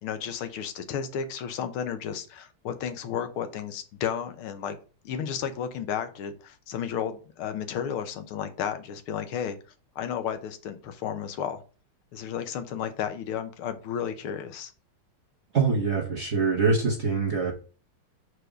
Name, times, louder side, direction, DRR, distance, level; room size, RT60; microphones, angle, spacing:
voice 1, 0.0-4.8 5.1-9.6 10.0-11.6 12.1-14.7, left 8 dB, 85° left, 1.8 m, -33 dB
voice 2, 15.5-17.5, right 4 dB, 50° right, 0.8 m, -24 dB
4.9 x 4.7 x 5.0 m
omnidirectional pair, 2.3 m